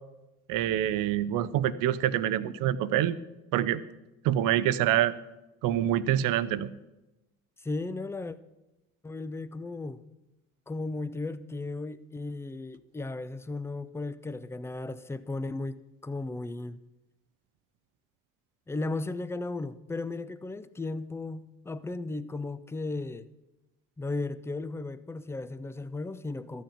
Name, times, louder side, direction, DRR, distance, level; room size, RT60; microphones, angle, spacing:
voice 1, 0.5-3.2 3.5-3.8 4.2-5.1 5.6-6.7, right 11 dB, 50° right, 16 dB, 0.7 m, -26 dB
voice 2, 7.6-8.4 9.0-10.0 10.7-16.8 18.7-23.3 24.0-26.6, left 2 dB, 5° left, 14 dB, 0.5 m, -35 dB
14.0 x 9.3 x 5.9 m, 0.99 s
figure-of-eight pair, 55°, 41 cm